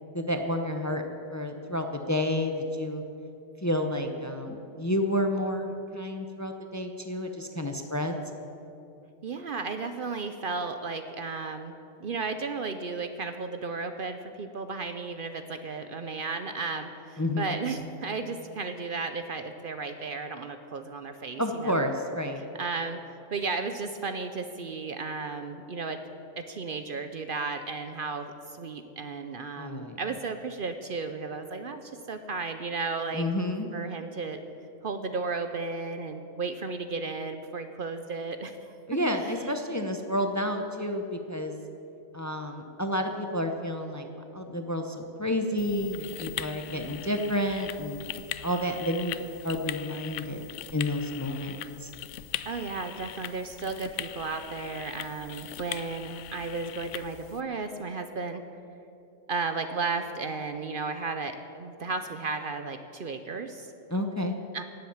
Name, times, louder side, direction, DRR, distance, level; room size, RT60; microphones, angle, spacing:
voice 1, 0.1-1.0 1.3-3.0 3.6-8.2 17.2-17.5 21.4-22.4 29.6-30.0 33.1-33.7 38.9-41.5 42.1-44.1 44.3-48.0 48.4-49.2 49.4-50.4 50.7-51.9 63.9-64.4, left 1 dB, 15° left, 5 dB, 0.7 m, -30 dB
voice 2, 9.2-11.7 12.0-21.8 22.6-23.0 23.3-26.0 26.4-33.3 33.7-34.4 34.8-38.7 46.6-47.1 52.5-58.4 59.3-63.7 64.5-64.6, right 4 dB, 55° right, 8 dB, 0.8 m, -34 dB
sound 1, 45.6-57.4, left 11 dB, 85° left, 0.9 m, -40 dB
18.0 x 7.8 x 7.2 m, 2.8 s
omnidirectional pair, 1.2 m